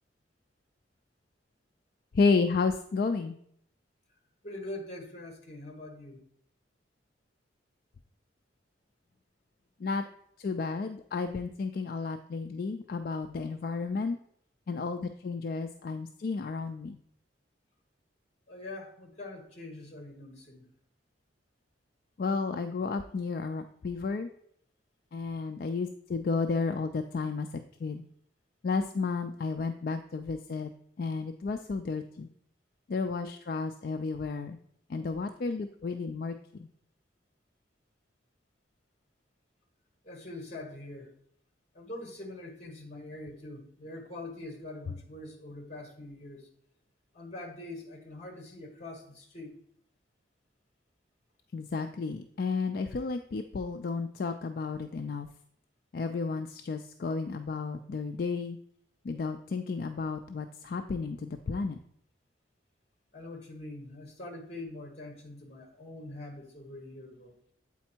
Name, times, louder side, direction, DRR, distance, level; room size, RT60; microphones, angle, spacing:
voice 1, 2.1-3.4 9.8-10.0 10.4-14.2 14.7-17.0 22.2-24.3 25.1-28.0 28.6-30.7 31.0-32.3 32.9-34.6 34.9-36.3 36.6-36.7 51.5-55.3 55.9-58.6 59.0-61.8, left 4 dB, 50° left, 6 dB, 0.3 m, -32 dB
voice 2, 4.4-6.2 18.5-20.7 40.0-41.1 41.7-46.4 47.1-49.5 63.1-67.3, left 2 dB, 35° left, 3 dB, 1.3 m, -43 dB
8.2 x 4.3 x 4.4 m, 0.66 s
head